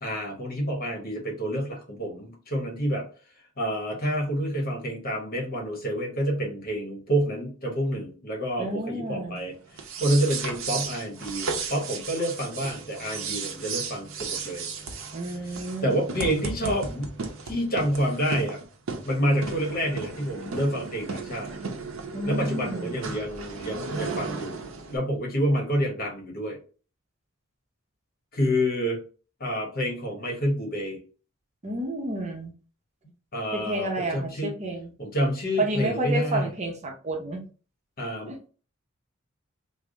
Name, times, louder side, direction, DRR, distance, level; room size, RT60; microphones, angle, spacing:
voice 1, 0.0-3.1 3.6-9.5 10.0-14.7 15.8-17.1 17.4-18.6 19.0-21.5 22.2-24.5 24.9-26.6 28.3-29.0 29.4-31.0 33.3-34.5 35.0-36.5 38.0-38.5, equal, 45° left, 0 dB, 1.2 m, -28 dB
voice 2, 8.6-9.4 15.1-15.9 22.1-23.0 31.6-32.5 33.5-34.9 35.6-37.4 38.3-38.4, right 1 dB, 35° right, 2 dB, 0.7 m, -30 dB
sound 1, 9.7-25.0, right 4 dB, 70° right, 0.6 m, -35 dB
3.5 x 2.0 x 3.8 m, 0.37 s
head